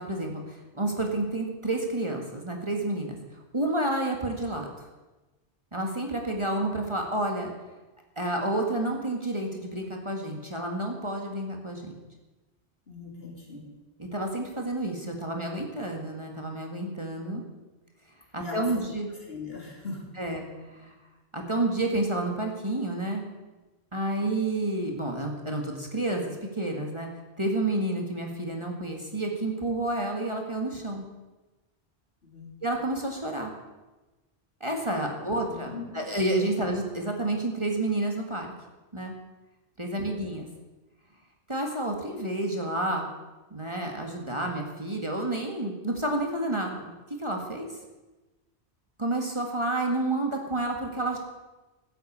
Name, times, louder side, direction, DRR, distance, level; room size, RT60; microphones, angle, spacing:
voice 1, 0.0-3.2 3.5-4.7 5.7-7.5 8.2-11.9 14.0-17.4 18.3-19.1 20.2-20.9 21.3-23.3 23.9-27.1 27.4-31.0 32.6-33.5 34.6-38.5 38.9-39.1 39.8-40.5 41.5-43.1 43.5-46.9 47.2-47.7 49.0-51.2, right 1 dB, 25° right, 1 dB, 2.0 m, -30 dB
voice 2, 12.9-13.7 18.4-18.8 19.1-20.0 32.2-32.5 34.9-36.1, left 3 dB, 60° left, -2 dB, 3.6 m, -40 dB
15.5 x 8.0 x 8.7 m, 1.1 s
omnidirectional pair, 1.1 m